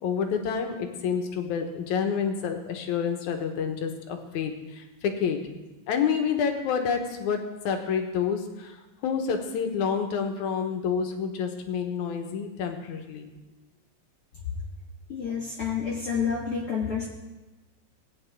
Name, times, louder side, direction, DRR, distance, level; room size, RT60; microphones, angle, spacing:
voice 1, 0.0-5.4 5.9-8.8 9.0-13.3, left 6 dB, 75° left, 5 dB, 2.4 m, -28 dB
voice 2, 15.1-17.1, left 6 dB, 55° left, -3 dB, 1.8 m, -29 dB
18.0 x 9.4 x 3.5 m, 1.1 s
omnidirectional pair, 3.6 m